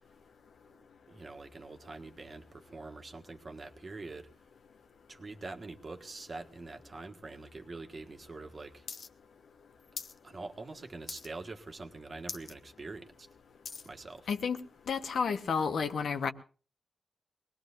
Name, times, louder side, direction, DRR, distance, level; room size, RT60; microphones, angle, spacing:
voice 1, 0.7-4.3 5.1-8.9 10.2-13.3 13.8-14.3, right 3 dB, 40° right, 1.5 m, -45 dB
sound 1, 8.9-9.1 9.3-10.2 10.5-10.8 11.1-11.5 11.9-12.0 12.2-12.6 13.0-13.9 14.6-14.7, left 5 dB, 60° left, 0.8 m, -43 dB
voice 2, 14.9-16.3, left 6 dB, 80° left, 1.1 m, -31 dB
23.0 x 19.5 x 2.6 m
wide cardioid pair, 115°, 0 cm